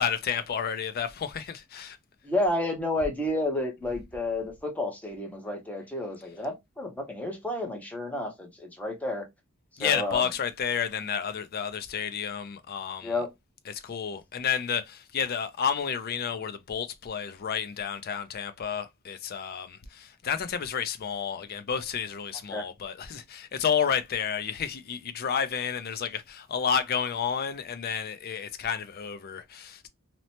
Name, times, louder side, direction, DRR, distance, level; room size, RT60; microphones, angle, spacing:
voice 1, 0.0-2.0 9.8-13.2 13.6-29.9, left 7 dB, 45° left, 0.4 m, -31 dB
voice 2, 2.2-9.3 9.7-10.3 13.0-13.3 22.5-22.7, left 1 dB, 5° left, 0.6 m, -31 dB
2.9 x 2.1 x 2.7 m
head